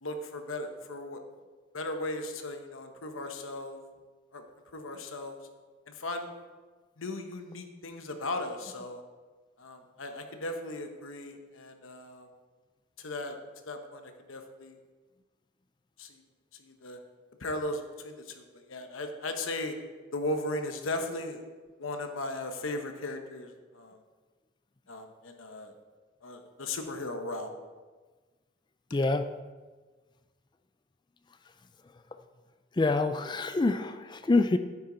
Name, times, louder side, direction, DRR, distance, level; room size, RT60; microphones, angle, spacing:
voice 1, 0.0-1.2 1.7-3.8 4.3-4.4 4.7-5.4 5.9-6.3 7.0-9.0 9.6-12.3 13.0-13.4 13.6-14.8 16.0-16.2 16.5-17.0 17.4-19.7 20.1-21.4 21.8-24.0 24.9-25.7 26.2-27.5, left 2 dB, 80° left, 5 dB, 1.0 m, -37 dB
voice 2, 28.9-29.3 32.7-34.6, left 3 dB, 20° left, 9 dB, 0.3 m, -26 dB
9.8 x 8.5 x 3.9 m, 1.3 s
head